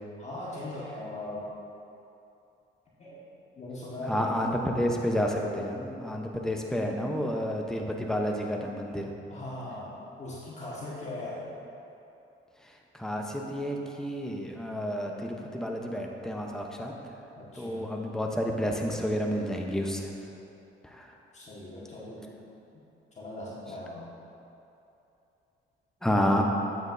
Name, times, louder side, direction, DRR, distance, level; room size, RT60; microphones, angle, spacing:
voice 1, 0.2-1.4 3.0-3.3 3.5-4.6 5.4-5.6 9.3-11.4 17.3-17.9 21.3-22.4 23.1-24.1, left 2 dB, 35° left, -7 dB, 1.6 m, -39 dB
voice 2, 4.1-9.1 12.9-16.9 17.5-20.1 20.8-21.1 26.0-26.4, equal, 5° left, 0 dB, 0.8 m, -30 dB
8.6 x 7.5 x 2.7 m, 2.8 s
cardioid pair, 90°, 20 cm